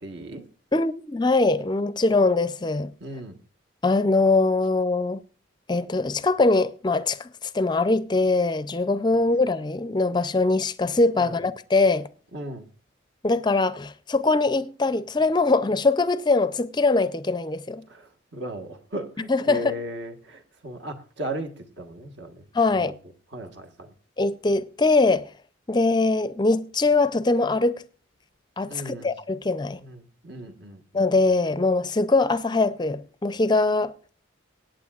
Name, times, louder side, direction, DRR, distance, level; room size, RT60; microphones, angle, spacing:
voice 1, 0.0-0.4 3.0-3.4 9.1-9.2 11.2-11.4 12.3-12.6 17.9-22.4 22.8-22.9 23.3-23.9 28.7-29.1 29.8-30.8, right 1 dB, 60° right, 1.4 m, -36 dB
voice 2, 0.7-2.9 3.8-5.2 5.7-12.1 13.2-17.8 19.3-19.8 22.5-22.9 24.2-25.3 25.7-27.8 28.6-29.8 30.9-33.9, left 3 dB, 20° left, 0.4 m, -22 dB
23.5 x 9.0 x 2.4 m
head